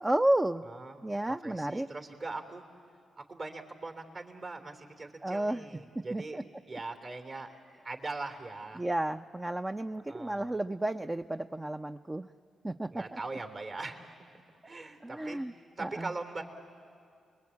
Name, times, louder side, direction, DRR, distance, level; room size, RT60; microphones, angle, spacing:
voice 1, 0.0-0.6 1.0-1.9 5.2-5.7 5.9-6.4 8.7-12.3 12.6-13.2 15.0-15.5 15.8-16.1, right 1 dB, 20° right, 7 dB, 0.6 m, -32 dB
voice 2, 0.6-1.0 1.3-2.6 3.2-6.4 6.7-7.5 7.8-8.8 10.1-10.5 12.9-14.3 14.6-16.4, right 3 dB, 50° right, 5 dB, 3.2 m, -41 dB
29.0 x 21.5 x 8.6 m, 2.3 s
supercardioid pair, 50°, 0 cm